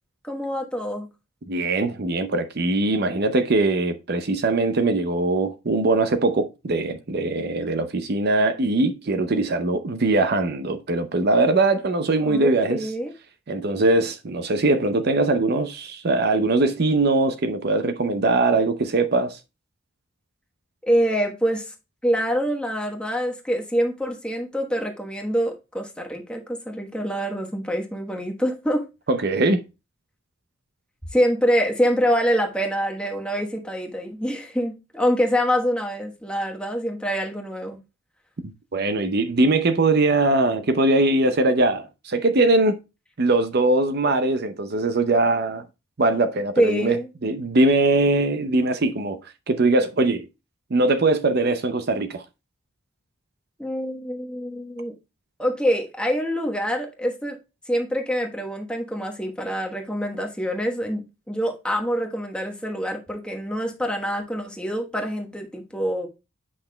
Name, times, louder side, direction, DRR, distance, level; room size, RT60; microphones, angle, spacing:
voice 1, 0.2-1.1 12.2-13.1 20.8-21.7 22.0-28.9 31.1-37.8 46.6-47.1 53.6-54.9 55.4-57.4 57.7-66.1, equal, 5° left, 1.1 m, -25 dB
voice 2, 1.5-12.9 13.5-19.4 29.1-29.6 38.7-42.8 43.2-45.6 46.0-47.0 47.2-50.3 50.7-52.2, right 2 dB, 50° right, 0.6 m, -21 dB
8.5 x 5.8 x 2.2 m
head